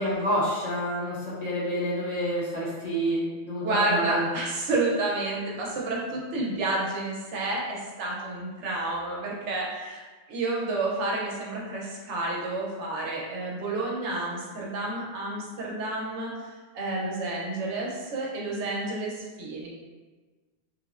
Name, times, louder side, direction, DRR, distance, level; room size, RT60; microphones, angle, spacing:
voice 1, 0.0-4.2, equal, 40° left, -9 dB, 0.8 m, -28 dB
voice 2, 3.6-10.0 10.3-16.5 16.7-19.7, right 2 dB, 90° right, -3 dB, 1.0 m, -30 dB
3.1 x 2.0 x 2.4 m, 1.3 s
omnidirectional pair, 1.2 m